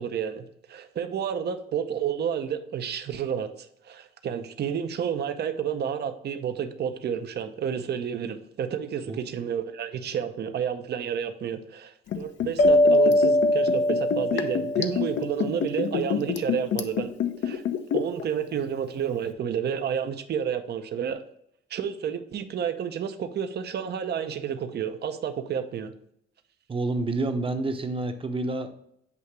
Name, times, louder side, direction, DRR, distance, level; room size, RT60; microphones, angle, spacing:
voice 1, 0.0-17.1 17.4-17.6 17.9-21.2 21.7-25.9, right 8 dB, 55° right, 9 dB, 0.7 m, -30 dB
Liquid, 12.1-18.2 18.5-18.6, left 8 dB, 70° left, 0.7 m, -27 dB
sound 1, 12.6-15.6, left 1 dB, 50° left, 1.3 m, -22 dB
voice 2, 26.7-28.7, right 2 dB, 25° right, 7 dB, 0.8 m, -28 dB
8.3 x 2.8 x 4.6 m, 0.73 s
cardioid pair, 90°, 20 cm